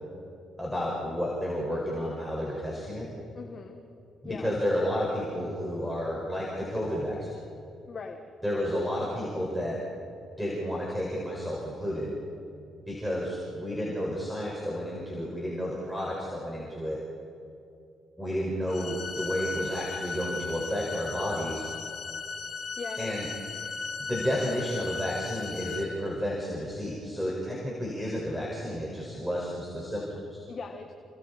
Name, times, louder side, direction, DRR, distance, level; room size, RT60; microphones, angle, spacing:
voice 1, 0.6-3.1 4.2-7.4 8.4-9.8 10.4-12.2 12.8-17.0 18.2-21.7 23.0-23.3 24.0-30.4, equal, ahead, -4 dB, 5.4 m, -31 dB
voice 2, 3.3-3.8 4.2-4.5 7.9-8.2 22.8-23.1 30.5-30.9, left 5 dB, 45° left, 3 dB, 1.7 m, -39 dB
sound 1, 18.7-25.8, left 4 dB, 60° left, 5.8 m, -37 dB
29.5 x 27.0 x 4.4 m, 2.6 s
cardioid pair, 90°, 0 cm